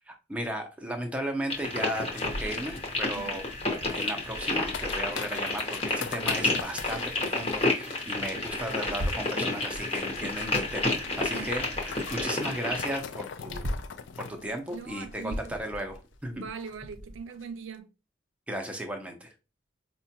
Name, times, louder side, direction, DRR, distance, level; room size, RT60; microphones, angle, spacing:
voice 1, 0.1-3.4 3.9-13.7 14.2-16.5 18.5-19.3, equal, 5° right, 0.5 m, -35 dB
sound 1, 1.5-13.0, left 2 dB, 30° left, 0.8 m, -31 dB
sound 2, 2.2-16.0 16.2-16.3 16.6-16.9 17.3-17.4, left 7 dB, 65° left, 0.4 m, -43 dB
sound 3, 2.2-5.7 5.9-6.0 6.4-7.6 8.1-9.4 9.7-12.3 12.6-12.7 13.0-14.1 14.7-17.2, equal, 45° right, 0.7 m, -41 dB
voice 2, 14.7-15.5 16.3-17.9, right 6 dB, 75° right, 0.4 m, -41 dB
4.7 x 2.2 x 2.8 m
head